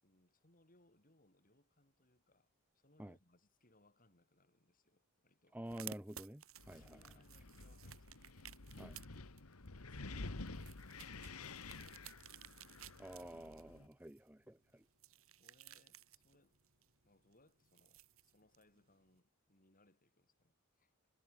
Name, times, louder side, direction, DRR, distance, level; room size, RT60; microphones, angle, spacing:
voice 1, 0.0-5.6 6.7-8.2 15.2-16.7 17.0-20.9, left 1 dB, 40° left, 6.3 m, -72 dB
voice 2, 5.5-7.0 8.8-9.0 13.0-14.8, right 1 dB, 5° right, 0.7 m, -50 dB
sound 1, 5.7-19.2, right 10 dB, 65° right, 4.3 m, -57 dB
Wind, 6.6-13.9, left 3 dB, 75° left, 1.6 m, -50 dB
head